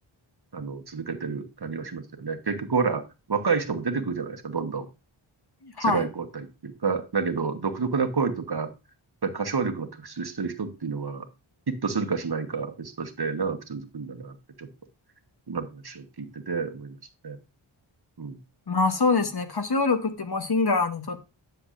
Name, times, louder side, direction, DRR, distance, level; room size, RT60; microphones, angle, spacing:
voice 1, 0.5-3.0 3.3-4.8 5.9-8.7 9.2-11.2 11.7-14.3 14.6-14.7 15.5-16.9 17.2-17.4 18.2-18.4, right 5 dB, 50° right, 1.1 m, -29 dB
voice 2, 5.6-6.1 18.7-21.2, left 3 dB, 50° left, 1.1 m, -24 dB
9.8 x 6.9 x 2.5 m
wide cardioid pair, 70°, 49 cm